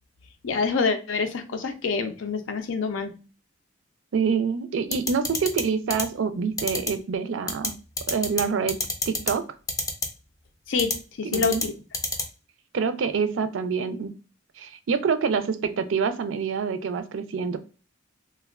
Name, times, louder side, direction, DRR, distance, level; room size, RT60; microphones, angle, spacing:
voice 1, 0.4-3.2 10.7-11.7, left 5 dB, 85° left, 8 dB, 0.5 m, -26 dB
voice 2, 4.1-7.7 8.1-8.8 9.1-9.4 11.2-11.6 12.7-14.1 14.6-17.6, right 6 dB, 80° right, 11 dB, 0.4 m, -26 dB
sound 1, 4.9-5.6 5.9-6.0 6.6-6.9 7.5-7.7 8.0-8.4 8.7-9.3 9.7-10.1 10.8-10.9 11.3-11.6 11.9-12.2, left 3 dB, 20° left, 0.4 m, -26 dB
3.3 x 2.1 x 2.3 m, 0.34 s
head